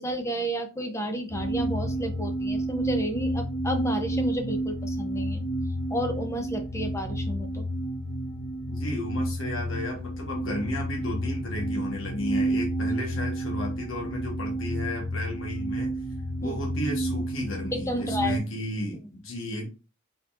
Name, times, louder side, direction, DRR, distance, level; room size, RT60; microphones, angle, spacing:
voice 1, 0.0-5.4 5.9-7.6 16.4-16.6 17.7-18.4, equal, 15° left, 6 dB, 0.7 m, -31 dB
sound 1, 1.3-18.4, right 1 dB, 50° left, 1.9 m, -30 dB
voice 2, 8.7-16.0 16.4-19.7, left 1 dB, 70° left, 0 dB, 1.5 m, -33 dB
4.4 x 3.9 x 2.6 m, 0.31 s
head